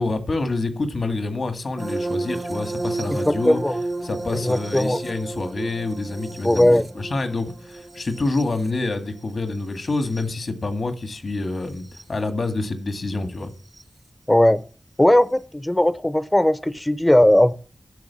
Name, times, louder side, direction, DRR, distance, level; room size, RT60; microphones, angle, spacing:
voice 1, 0.0-3.6 4.0-13.5, left 3 dB, 75° left, 1.9 m, -27 dB
sound 1, 1.8-10.5 11.8-12.0 13.7-13.8, right 2 dB, 40° right, 0.6 m, -32 dB
voice 2, 3.1-3.7 4.4-5.0 6.4-6.9 14.3-14.6 15.0-17.5, left 1 dB, 15° left, 0.6 m, -18 dB
10.5 x 6.8 x 8.4 m
wide cardioid pair, 60°, 0 cm